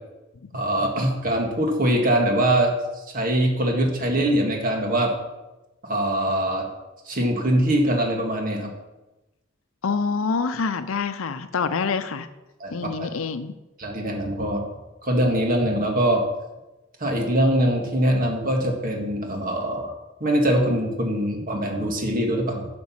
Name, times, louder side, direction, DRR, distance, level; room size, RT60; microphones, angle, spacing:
voice 1, 0.5-2.7 3.1-5.1 5.8-6.7 7.1-8.7 12.6-13.1 13.8-14.6 15.0-16.2 17.0-19.9 20.2-22.7, right 1 dB, 45° right, 1 dB, 1.9 m, -23 dB
voice 2, 9.8-12.3 12.7-13.5, left 5 dB, 80° left, 11 dB, 0.6 m, -26 dB
10.5 x 5.3 x 7.2 m, 1.0 s
head